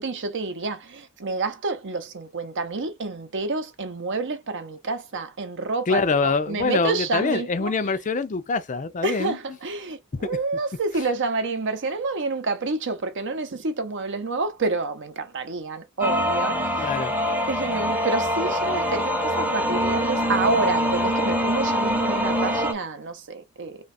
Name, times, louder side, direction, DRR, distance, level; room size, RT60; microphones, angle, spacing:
voice 1, 0.0-7.7 9.0-16.9 17.5-23.8, right 3 dB, 55° right, 0.7 m, -28 dB
voice 2, 5.9-9.4 16.8-17.1, left 4 dB, 35° left, 0.4 m, -24 dB
sound 1, 16.0-22.7, equal, 5° right, 0.7 m, -24 dB
3.4 x 2.4 x 4.1 m
head